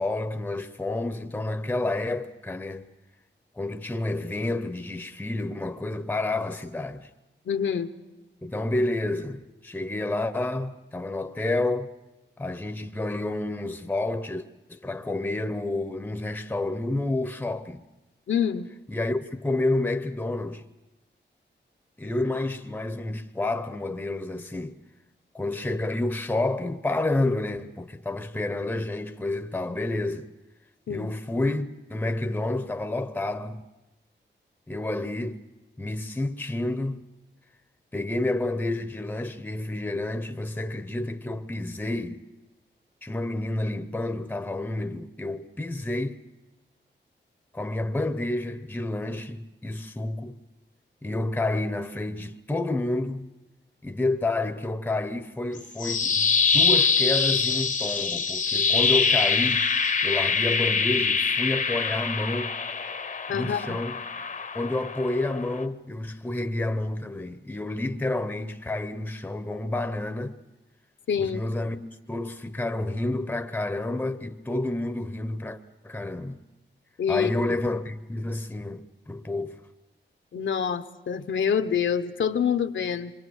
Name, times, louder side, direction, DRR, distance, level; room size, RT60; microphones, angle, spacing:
voice 1, 0.0-2.9 3.6-7.1 8.4-11.9 12.4-17.8 18.9-20.6 22.0-24.8 25.3-30.3 30.9-33.6 34.7-35.4 35.8-37.0 37.9-42.2 43.0-46.2 47.5-50.4 51.0-53.3 53.8-59.6 60.0-62.5 63.3-64.0 64.5-70.4 71.2-75.6 75.8-76.4 77.1-79.6, left 2 dB, 10° left, 0.7 m, -29 dB
voice 2, 7.5-7.9 18.3-18.7 30.9-31.1 63.3-63.8 71.1-71.4 77.0-77.3 80.3-83.1, left 7 dB, 80° left, 0.9 m, -26 dB
sound 1, 55.6-65.6, left 5 dB, 45° left, 0.8 m, -24 dB
26.5 x 24.0 x 6.3 m
wide cardioid pair, 135°, 19 cm